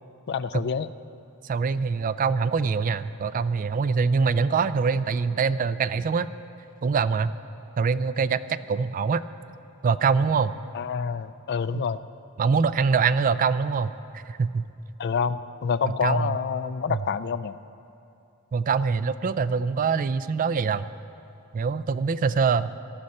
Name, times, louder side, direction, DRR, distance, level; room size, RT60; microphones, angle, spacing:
voice 1, 0.3-0.9 10.7-12.0 15.0-17.6, left 6 dB, 50° left, 15 dB, 0.3 m, -27 dB
voice 2, 1.4-6.3 6.8-7.3 7.8-9.2 9.8-10.5 11.7-11.8 12.4-14.7 15.8-16.4 16.9-17.0 18.5-20.9 21.5-22.7, right 5 dB, 35° right, 14 dB, 0.3 m, -24 dB
18.5 x 13.0 x 4.2 m, 2.8 s
head